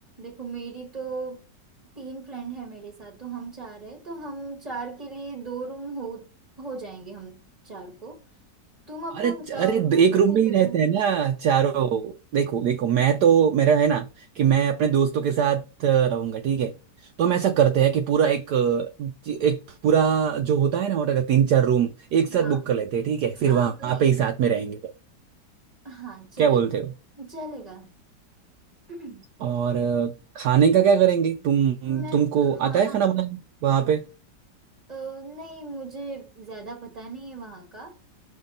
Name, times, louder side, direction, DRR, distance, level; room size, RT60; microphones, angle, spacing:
voice 1, 0.2-1.4 1.9-6.3 6.6-8.2 8.9-10.8 22.3-22.7 23.5-24.1 25.8-26.7 27.2-27.9 28.9-29.3 31.9-33.0 34.9-38.0, right 3 dB, 25° right, 1.5 m, -38 dB
voice 2, 9.2-16.7 17.2-24.9 26.4-26.9 29.4-34.0, right 8 dB, 70° right, 1.1 m, -22 dB
5.7 x 5.6 x 3.8 m
omnidirectional pair, 1.9 m